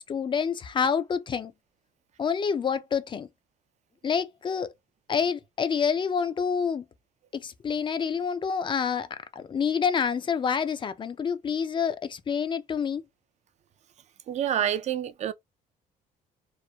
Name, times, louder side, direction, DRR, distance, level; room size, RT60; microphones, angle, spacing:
voice 1, 0.0-1.5 2.2-3.3 4.0-4.7 5.1-6.9 7.3-9.1 9.4-13.0, left 6 dB, 30° left, 0.4 m, -27 dB
voice 2, 14.3-15.3, right 10 dB, 45° right, 0.4 m, -27 dB
2.9 x 2.0 x 2.2 m
cardioid pair, 110°, 17 cm